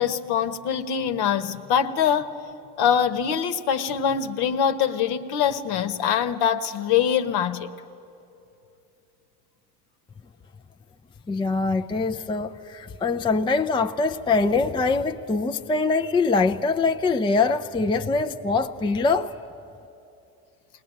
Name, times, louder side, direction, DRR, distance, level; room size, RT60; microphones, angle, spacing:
voice 1, 0.0-2.3 2.8-7.7, left 8 dB, 55° left, 1.2 m, -23 dB
voice 2, 11.3-19.3, left 4 dB, 10° left, 0.5 m, -23 dB
21.0 x 19.0 x 9.0 m
hypercardioid pair, 75°, 47 cm